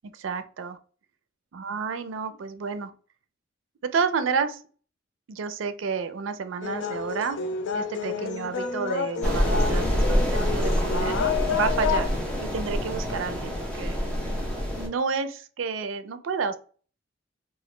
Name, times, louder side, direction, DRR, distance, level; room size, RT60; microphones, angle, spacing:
voice 1, 0.1-0.8 1.5-2.9 3.8-4.6 5.3-7.4 7.7-12.1 12.4-14.0 14.8-16.6, right 5 dB, 85° right, 10 dB, 0.4 m, -30 dB
sound 1, 6.6-12.1, left 6 dB, 70° left, 0.4 m, -29 dB
sound 2, 9.2-14.9, equal, 5° left, 0.7 m, -26 dB
2.9 x 2.4 x 3.1 m, 0.40 s
head